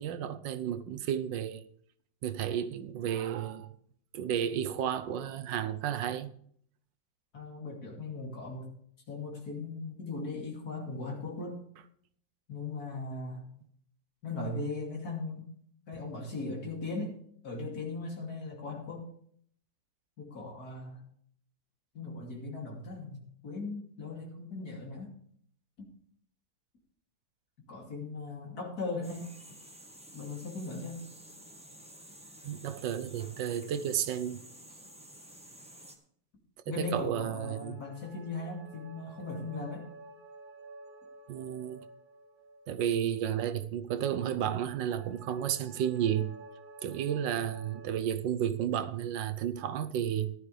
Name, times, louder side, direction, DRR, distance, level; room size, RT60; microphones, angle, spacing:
voice 1, 0.0-1.6 2.2-3.7 4.1-6.3 32.4-34.4 36.7-37.8 41.3-41.8 42.7-46.4 46.8-50.3, right 9 dB, 75° right, 1.4 m, -32 dB
voice 2, 7.3-8.7 9.1-11.6 12.5-13.5 14.2-15.4 15.9-17.1 17.4-19.1 20.2-21.0 21.9-25.1 25.8-25.9 27.7-29.3 30.1-31.0 36.7-39.8, left 3 dB, 50° left, 3.1 m, -38 dB
sound 1, 29.0-36.0, right 1 dB, 5° right, 1.0 m, -52 dB
sound 2, 37.1-43.7 44.5-47.9, right 3 dB, 55° right, 2.0 m, -52 dB
14.0 x 11.5 x 3.3 m
omnidirectional pair, 2.1 m